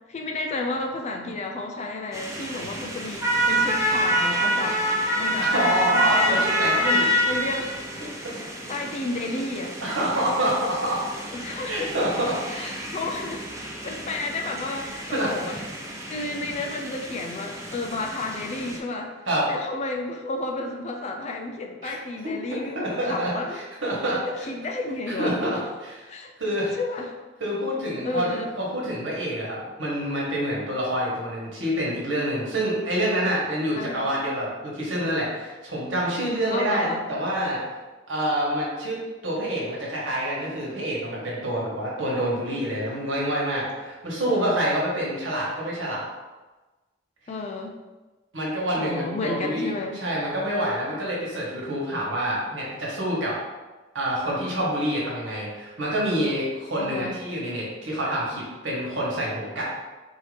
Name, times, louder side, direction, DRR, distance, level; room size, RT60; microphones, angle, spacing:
voice 1, 0.1-4.8 5.2-7.7 8.4-9.7 11.3-11.9 12.5-13.5 13.8-15.6 16.1-19.2 19.5-23.6 24.2-25.4 26.1-26.3 26.8-27.1 28.0-28.5 33.8-34.1 36.5-37.1 44.3-44.7 47.3-47.8 48.8-50.0 56.8-57.2, left 2 dB, 35° left, 3 dB, 0.4 m, -32 dB
sound 1, 2.1-18.8, equal, 15° right, 0.6 m, -28 dB
voice 2, 5.4-7.1 8.2-8.3 9.8-11.0 11.7-12.7 15.1-15.6 16.1-16.2 19.2-19.5 21.8-21.9 22.2-24.2 25.1-26.1 26.4-26.8 27.4-28.3 28.6-37.6 38.1-46.0 48.3-53.4 53.9-59.6, right 1 dB, 75° right, -5 dB, 1.4 m, -27 dB
4.5 x 2.8 x 3.3 m, 1.2 s
head